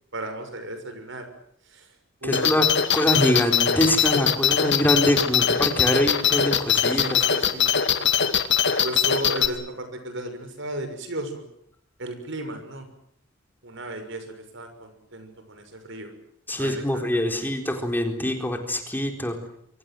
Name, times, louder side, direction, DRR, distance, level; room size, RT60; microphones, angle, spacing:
voice 1, 0.1-1.3 1.7-1.9 2.2-2.6 6.9-8.0 8.8-11.4 12.0-12.9 13.6-16.1 16.6-17.5, right 1 dB, 65° right, 8 dB, 6.5 m, -35 dB
voice 2, 2.2-7.2 16.5-19.4, left 1 dB, 10° left, 4 dB, 4.1 m, -24 dB
sound 1, 2.3-9.5, left 8 dB, 60° left, 2.3 m, -21 dB
27.5 x 24.5 x 7.8 m, 0.70 s
head